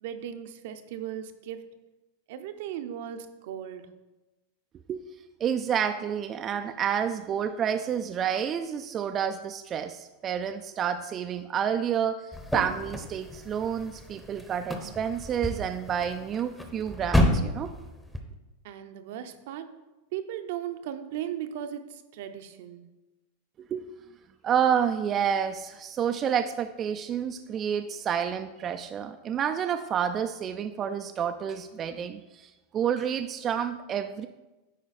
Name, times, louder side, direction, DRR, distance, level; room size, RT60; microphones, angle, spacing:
voice 1, 0.0-1.7 2.3-3.9 18.6-19.8 20.1-22.9, right 10 dB, 65° right, 9 dB, 0.7 m, -37 dB
voice 2, 5.4-17.7 23.6-23.9 24.4-34.3, right 8 dB, 30° right, 7 dB, 0.3 m, -29 dB
sound 1, 12.3-18.2, equal, 5° left, 0.9 m, -30 dB
10.0 x 4.2 x 4.2 m, 1.1 s
hypercardioid pair, 125°, 0 cm